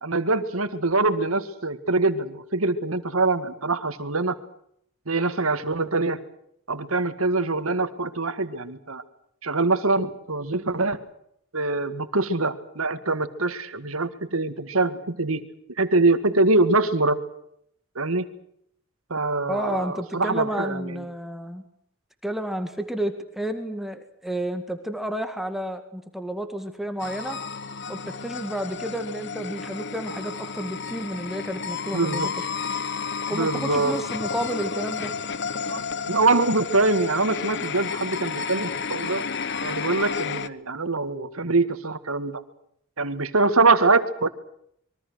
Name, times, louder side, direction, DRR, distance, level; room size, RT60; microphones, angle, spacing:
voice 1, 0.0-4.4 5.1-6.2 6.7-9.0 9.4-11.0 11.5-15.4 15.8-17.2 18.0-18.3 19.1-21.0 31.9-32.3 33.3-34.0 35.7-39.2 39.6-42.4 43.0-44.3, right 3 dB, 80° right, 10 dB, 2.0 m, -24 dB
voice 2, 19.5-21.6 22.2-27.4 27.9-32.3 33.3-35.1, right 1 dB, ahead, 7 dB, 2.0 m, -31 dB
sound 1, 27.0-40.5, left 6 dB, 55° left, 1.0 m, -32 dB
26.0 x 23.0 x 6.4 m, 0.71 s
head